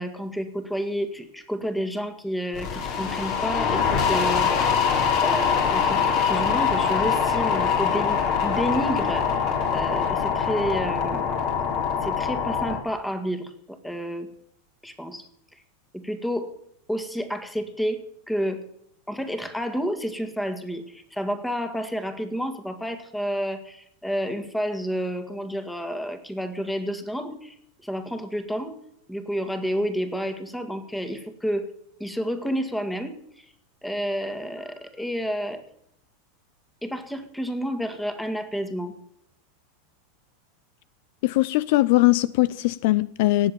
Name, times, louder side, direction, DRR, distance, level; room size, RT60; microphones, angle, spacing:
voice 1, 0.0-4.7 5.2-6.0 6.3-9.4 9.7-11.3 12.0-14.3 14.8-15.3 15.9-16.5 16.9-18.6 19.1-27.6 27.8-28.8 29.1-31.7 32.0-33.5 33.8-35.6 36.8-38.9, equal, 5° left, 2.0 m, -30 dB
sound 1, 2.5-12.8, left 6 dB, 50° left, 3.8 m, -23 dB
voice 2, 41.2-43.5, left 18 dB, 65° left, 0.5 m, -20 dB
18.0 x 7.6 x 6.9 m
supercardioid pair, 125°, 0 cm